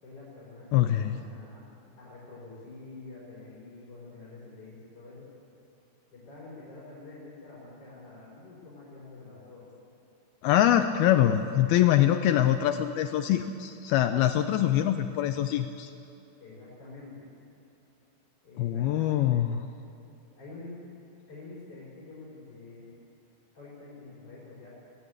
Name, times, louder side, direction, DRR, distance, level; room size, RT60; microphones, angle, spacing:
voice 1, 0.0-5.3 6.1-9.7 16.4-17.3 18.4-19.2 20.4-20.8 21.3-23.0 23.5-24.7, left 3 dB, 35° left, -7 dB, 5.6 m, -47 dB
voice 2, 0.7-1.2 10.4-15.9 18.6-19.6, left 12 dB, 80° left, 8 dB, 2.3 m, -24 dB
20.5 x 17.5 x 8.0 m, 2.8 s
omnidirectional pair, 5.0 m